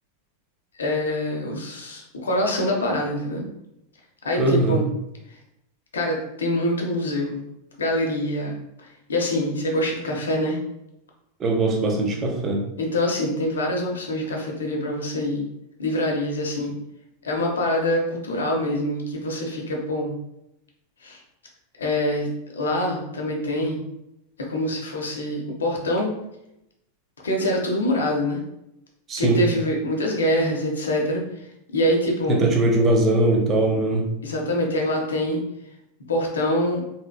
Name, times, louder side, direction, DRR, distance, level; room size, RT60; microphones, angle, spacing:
voice 1, 0.8-3.4 4.2-4.8 5.9-7.4 7.8-10.6 12.8-15.4 15.8-16.7 17.2-20.2 21.0-21.2 21.8-22.3 22.5-23.8 24.4-26.1 27.2-28.4 29.2-31.5 31.7-32.4 34.2-35.4 36.1-36.8, left 1 dB, 70° left, 1 dB, 0.7 m, -25 dB
voice 2, 4.4-4.8 11.4-12.6 29.1-29.4 32.3-34.1, right 2 dB, 25° right, 1 dB, 0.7 m, -20 dB
3.5 x 3.2 x 2.2 m, 0.84 s
figure-of-eight pair, 90°, 0 cm